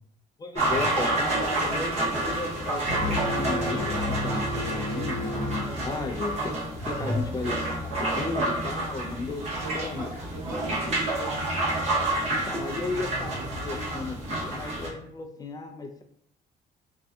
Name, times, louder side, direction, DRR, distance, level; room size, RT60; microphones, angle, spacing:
voice 1, 0.4-6.5 6.8-7.9 8.2-9.4 9.8-10.1 12.3-16.0, left 3 dB, 20° left, 4 dB, 0.4 m, -34 dB
sound 1, 0.6-14.9, right 2 dB, 40° right, 0.8 m, -29 dB
sound 2, 2.9-6.5, left 2 dB, 85° right, 1.4 m, -32 dB
voice 2, 6.8-7.2 9.5-11.3, equal, 25° right, -7 dB, 1.5 m, -36 dB
2.6 x 2.3 x 2.2 m, 0.67 s
cardioid pair, 110°, 17 cm